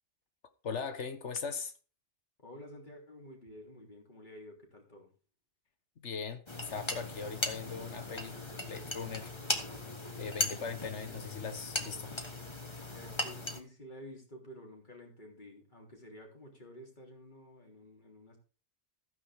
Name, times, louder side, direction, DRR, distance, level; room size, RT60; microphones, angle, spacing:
voice 1, 0.6-1.7 6.0-9.3 9.7-9.8 10.2-12.1, left 5 dB, 80° left, 1.6 m, -40 dB
voice 2, 2.4-5.1 12.8-18.4, equal, 45° left, 3.5 m, -51 dB
sound 1, 6.5-13.6, left 2 dB, 25° left, 1.5 m, -38 dB
14.5 x 9.6 x 3.6 m
omnidirectional pair, 1.2 m